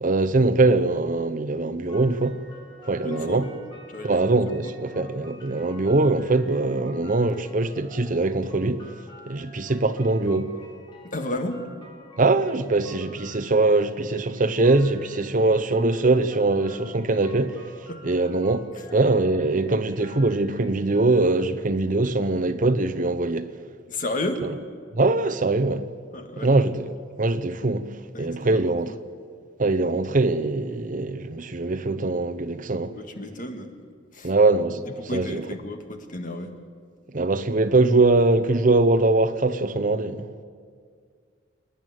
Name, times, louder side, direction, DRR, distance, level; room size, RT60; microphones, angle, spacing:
voice 1, 0.0-2.4 2.9-3.5 4.0-8.8 9.3-10.5 12.2-17.6 18.0-18.6 18.9-23.5 24.9-25.9 26.4-26.9 27.2-27.9 28.2-28.9 29.6-33.0 34.2-34.8 35.1-35.4 37.1-40.3, right 2 dB, 45° right, 0.8 m, -22 dB
sound 1, 1.9-21.2, left 1 dB, 25° left, 3.9 m, -49 dB
voice 2, 3.0-3.5 3.9-4.2 4.6-4.7 5.0-5.1 11.0-11.6 17.9-18.2 23.9-24.5 26.1-26.5 28.1-28.8 32.9-33.7 34.1-34.3 34.9-36.5, left 1 dB, 45° left, 1.8 m, -32 dB
28.5 x 10.5 x 9.2 m
head